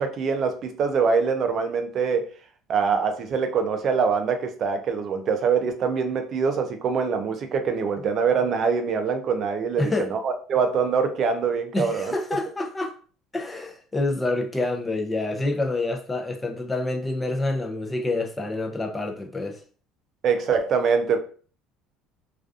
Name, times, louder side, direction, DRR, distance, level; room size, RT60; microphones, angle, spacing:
voice 1, 0.0-2.3 2.7-12.1 20.2-21.2, right 5 dB, 50° right, 0.4 m, -24 dB
voice 2, 9.8-10.1 11.7-13.0 13.3-19.6, left 2 dB, 20° left, 0.5 m, -27 dB
2.4 x 2.2 x 2.4 m
supercardioid pair, 85°, 0 cm